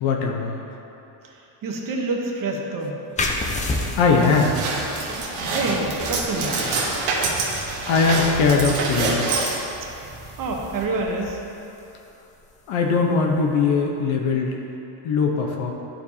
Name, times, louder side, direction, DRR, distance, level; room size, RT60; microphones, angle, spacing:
voice 1, 0.0-0.6 4.0-4.5 7.9-9.3 12.7-14.6 15.0-15.7, left 4 dB, 75° left, 0 dB, 1.0 m, -20 dB
voice 2, 1.2-3.0 5.5-6.6 9.8-9.9 10.4-11.4, right 3 dB, 45° right, 0 dB, 0.9 m, -27 dB
sound 1, 3.1-14.4, left 2 dB, 20° left, 0.3 m, -34 dB
sound 2, 3.5-10.8, right 3 dB, 90° right, 1.3 m, -27 dB
11.5 x 4.6 x 2.8 m, 3.0 s
cardioid pair, 160°, 47 cm